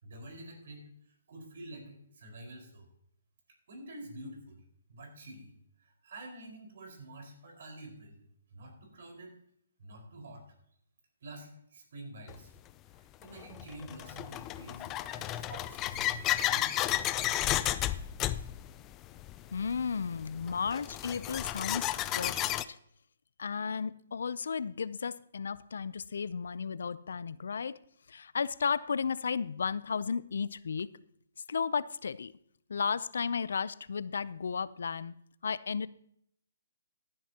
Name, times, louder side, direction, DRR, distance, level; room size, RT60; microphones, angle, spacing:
voice 1, 0.0-0.9 1.3-2.8 3.7-4.6 4.9-5.5 5.8-8.2 8.5-9.4 9.8-10.4 11.2-12.5 13.2-16.2 16.5-17.6, right 1 dB, 60° right, 3 dB, 4.7 m, -48 dB
sound 1, 12.3-12.4 13.2-22.6, left 13 dB, 20° left, 0.4 m, -33 dB
voice 2, 19.5-22.8 23.4-27.7 28.1-30.9 31.5-32.3 32.7-35.1 35.4-35.9, left 6 dB, 70° left, 18 dB, 0.5 m, -34 dB
15.0 x 11.0 x 2.9 m, 0.69 s
hypercardioid pair, 150°, 0 cm